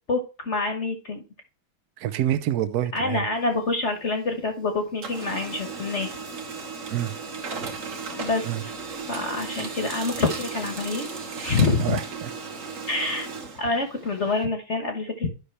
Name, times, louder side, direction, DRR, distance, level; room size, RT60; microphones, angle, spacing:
voice 1, 0.1-1.2 2.9-6.1 8.2-8.7 9.1-11.1 11.4-11.9 12.9-13.3 13.6-15.3, left 3 dB, 40° left, 5 dB, 1.2 m, -26 dB
voice 2, 2.0-3.2 6.9-7.1 8.4-8.6 11.8-12.3, right 12 dB, 65° right, 13 dB, 1.0 m, -27 dB
Printer, 3.3-4.6 4.9-14.4, right 4 dB, 45° right, 1.4 m, -36 dB
11.5 x 5.5 x 3.2 m, 0.33 s
omnidirectional pair, 2.2 m